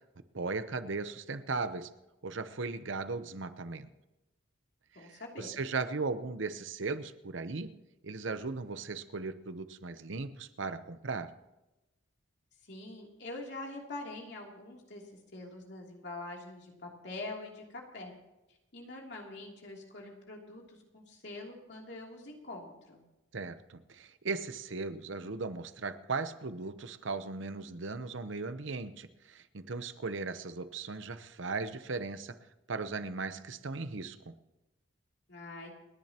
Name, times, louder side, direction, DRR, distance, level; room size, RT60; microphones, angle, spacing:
voice 1, 0.3-1.9 2.2-3.9 4.9-7.7 8.0-11.3 23.3-32.4 32.7-34.3, right 4 dB, 70° right, 11 dB, 0.8 m, -37 dB
voice 2, 4.9-5.5 12.6-15.0 15.3-18.1 18.7-23.0 35.3-35.7, left 2 dB, 55° left, 0 dB, 3.0 m, -44 dB
29.5 x 10.5 x 2.9 m, 1.0 s
head